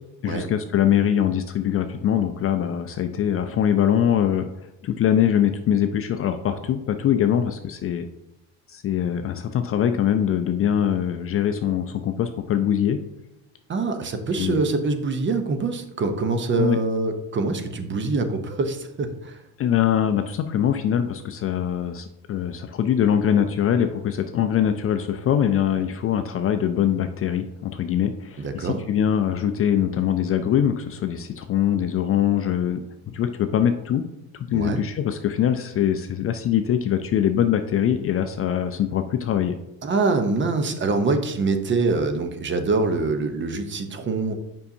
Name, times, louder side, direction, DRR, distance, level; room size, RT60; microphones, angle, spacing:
voice 1, 0.2-4.5 4.8-8.1 8.7-13.0 14.4-14.6 16.6-16.8 19.6-34.0 34.3-39.5, left 9 dB, 35° left, 8 dB, 0.4 m, -23 dB
voice 2, 13.7-19.4 28.4-28.8 34.5-34.8 39.8-44.3, right 3 dB, 30° right, 7 dB, 0.7 m, -24 dB
6.8 x 5.4 x 2.7 m, 0.93 s
supercardioid pair, 100°, 40 cm